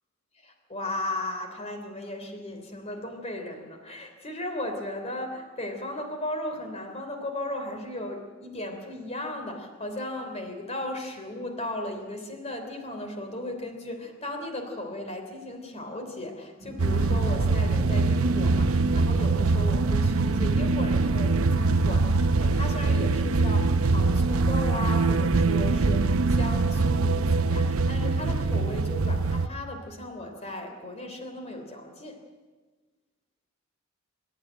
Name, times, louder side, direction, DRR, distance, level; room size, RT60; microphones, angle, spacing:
voice 1, 0.4-32.2, left 1 dB, 30° left, 4 dB, 3.2 m, -36 dB
sound 1, 16.6-25.8, right 2 dB, 10° left, 5.2 m, -45 dB
sound 2, 16.8-29.5, right 3 dB, 85° right, 0.8 m, -23 dB
25.5 x 13.0 x 9.0 m, 1.3 s
head